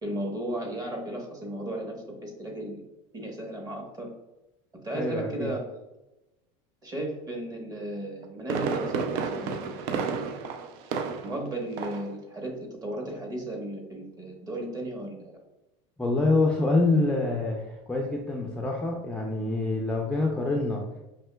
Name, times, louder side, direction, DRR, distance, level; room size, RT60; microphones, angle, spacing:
voice 1, 0.0-2.8 3.1-4.1 4.8-5.6 6.8-9.6 9.9-10.2 11.2-15.4, right 1 dB, 25° right, 1 dB, 1.1 m, -35 dB
voice 2, 4.9-5.5 16.0-20.8, left 2 dB, 5° left, -1 dB, 0.5 m, -26 dB
Fireworks, 8.0-11.5 11.8-12.1 12.5-12.6, right 5 dB, 65° right, 0.4 m, -31 dB
5.3 x 2.9 x 2.2 m, 0.97 s
supercardioid pair, 115°, 16 cm